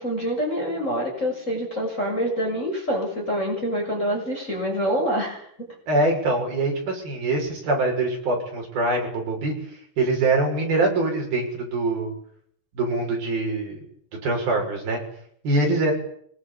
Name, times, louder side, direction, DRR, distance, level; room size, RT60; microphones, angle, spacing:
voice 1, 0.0-5.7, equal, 15° left, 1 dB, 7.2 m, -26 dB
voice 2, 5.9-9.7 10.0-12.1 12.7-13.8 14.2-15.0 15.4-15.9, right 2 dB, 50° right, 1 dB, 8.3 m, -24 dB
25.0 x 23.0 x 8.6 m, 0.66 s
omnidirectional pair, 5.4 m